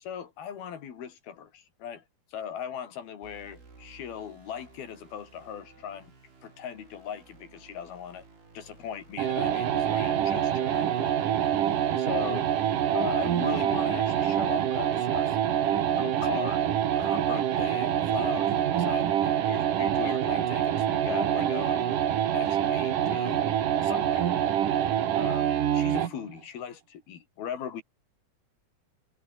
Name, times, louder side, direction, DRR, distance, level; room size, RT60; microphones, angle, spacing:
voice 1, 0.0-2.0 2.3-6.1 6.4-8.3 8.5-11.3 12.0-12.4 12.9-16.7 17.0-21.9 22.3-23.5 23.8-24.3 25.1-27.8, left 8 dB, 80° left, 4.9 m, -38 dB
sound 1, 3.2-14.9, right 4 dB, 90° right, 9.9 m, -55 dB
sound 2, 9.2-26.2, right 10 dB, 65° right, 3.2 m, -26 dB
omnidirectional pair, 4.3 m